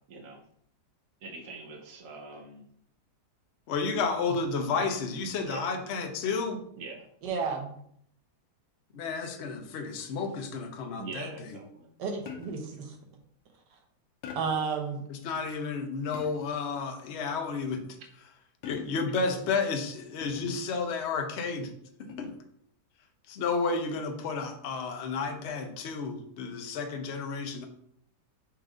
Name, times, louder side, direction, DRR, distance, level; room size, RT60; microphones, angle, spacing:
voice 1, 0.1-0.4 1.2-2.6 5.4-5.6 6.8-7.1 11.0-11.9, right 3 dB, 55° right, 1 dB, 1.1 m, -43 dB
voice 2, 3.7-6.6 8.9-11.3 15.1-17.8 18.6-21.7 22.0-22.4 23.3-27.7, left 4 dB, 60° left, 5 dB, 0.7 m, -31 dB
voice 3, 7.2-7.8 12.0-12.9 14.3-15.0, right 5 dB, 80° right, 3 dB, 1.5 m, -32 dB
sound 1, 12.3-12.8 14.2-14.7 16.1-16.6 18.6-19.2 20.2-20.7 22.1-22.5, left 6 dB, 90° left, 1.3 m, -44 dB
4.4 x 2.5 x 4.9 m, 0.68 s
omnidirectional pair, 1.8 m